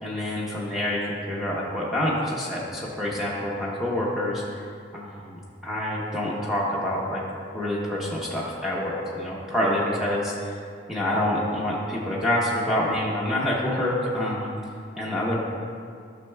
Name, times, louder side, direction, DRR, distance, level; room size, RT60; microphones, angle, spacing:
voice 1, 0.0-4.7 4.9-7.2 7.5-10.6 10.9-14.6 15.0-15.4, left 1 dB, ahead, -6 dB, 0.8 m, -27 dB
11.0 x 6.3 x 2.2 m, 2.2 s
head